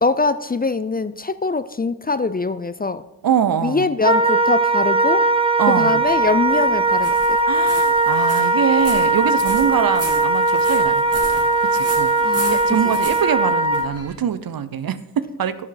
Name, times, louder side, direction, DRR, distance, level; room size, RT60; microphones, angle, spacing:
voice 1, 0.0-3.1 3.6-5.3 5.7-7.4 12.2-12.6 12.8-13.0, left 3 dB, 25° left, 14 dB, 0.5 m, -22 dB
voice 2, 3.2-3.9 5.6-6.0 7.5-12.1 12.5-15.6, right 8 dB, 60° right, 14 dB, 0.7 m, -23 dB
Wind instrument woodwind instrument, 4.0-13.9, right 2 dB, 15° right, 0.8 m, -19 dB
sound 1, 6.0-14.1, right 1 dB, 35° right, 3.1 m, -36 dB
11.5 x 7.5 x 3.9 m, 0.93 s
cardioid pair, 50°, 40 cm